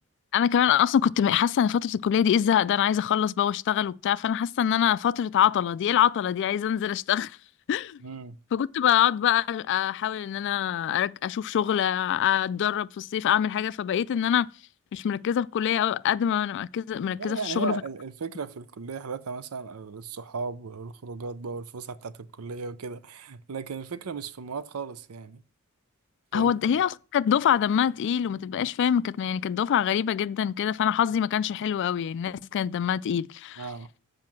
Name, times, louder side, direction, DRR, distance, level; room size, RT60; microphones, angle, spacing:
voice 1, 0.3-7.4 7.7-8.0 8.5-14.5 14.9-17.8 26.3-33.7, left 9 dB, 55° left, 0.3 m, -25 dB
voice 2, 8.0-8.4 17.2-25.4 26.3-26.8 33.6-33.9, right 4 dB, 85° right, 0.6 m, -36 dB
7.6 x 5.2 x 6.0 m
head